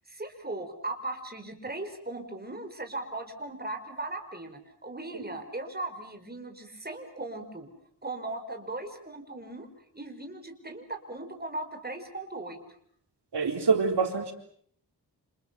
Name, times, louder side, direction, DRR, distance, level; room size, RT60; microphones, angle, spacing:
voice 1, 0.1-7.7 8.0-9.7 9.9-12.6, right 2 dB, 25° right, 5 dB, 5.0 m, -38 dB
voice 2, 13.3-14.3, right 5 dB, 90° right, 3 dB, 4.1 m, -25 dB
29.0 x 28.5 x 6.9 m, 0.63 s
wide cardioid pair, 95°, 39 cm